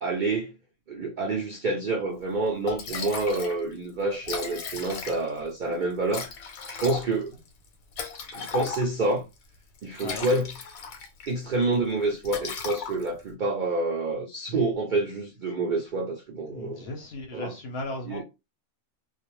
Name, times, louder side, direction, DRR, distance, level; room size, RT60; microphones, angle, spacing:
voice 1, 0.0-0.5 0.9-6.3 6.7-7.3 8.3-9.2 9.8-10.6 11.3-16.9 17.3-17.5 18.1-18.2, right 2 dB, 80° right, 0.4 m, -28 dB
Liquid, 2.3-2.4 2.7-3.6 3.9-4.0 4.2-5.4 6.1-9.1 9.8-11.3 11.6-11.9 12.2-13.3, left 5 dB, 85° left, 1.1 m, -36 dB
voice 2, 16.5-18.2, left 2 dB, 60° left, 0.7 m, -36 dB
2.4 x 2.0 x 3.0 m
omnidirectional pair, 1.4 m